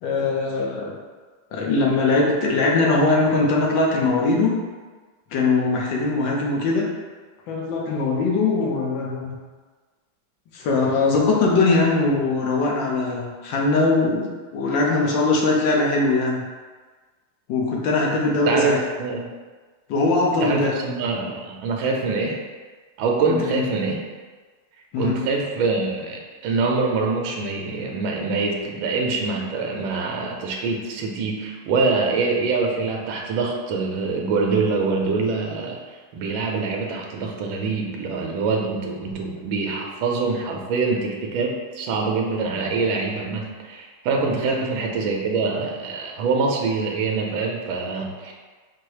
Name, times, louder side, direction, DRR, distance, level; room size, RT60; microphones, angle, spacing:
voice 1, 0.0-1.0 1.5-4.6 5.3-6.9 7.5-9.4 10.5-16.4 17.5-18.8 19.9-20.7 23.2-23.6 24.9-25.2 29.2-29.3 44.5-44.6, left 3 dB, 70° left, -2 dB, 1.2 m, -21 dB
voice 2, 18.5-19.3 20.4-22.4 23.0-24.0 25.0-35.8 36.1-48.3, right 4 dB, 75° right, 0 dB, 1.3 m, -24 dB
4.6 x 2.0 x 4.6 m, 1.4 s
omnidirectional pair, 2.4 m